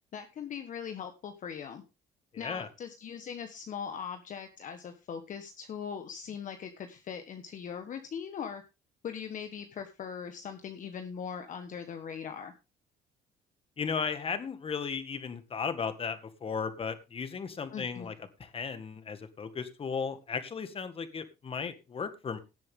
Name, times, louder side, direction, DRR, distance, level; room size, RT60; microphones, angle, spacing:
voice 1, 0.1-1.8 2.4-8.6 9.0-12.5 17.7-18.1, left 7 dB, 50° left, 7 dB, 1.3 m, -40 dB
voice 2, 2.3-2.7 13.8-18.1 18.4-22.4, left 5 dB, 35° left, 10 dB, 1.8 m, -35 dB
17.5 x 7.6 x 3.6 m, 0.28 s
cardioid pair, 110°, 17 cm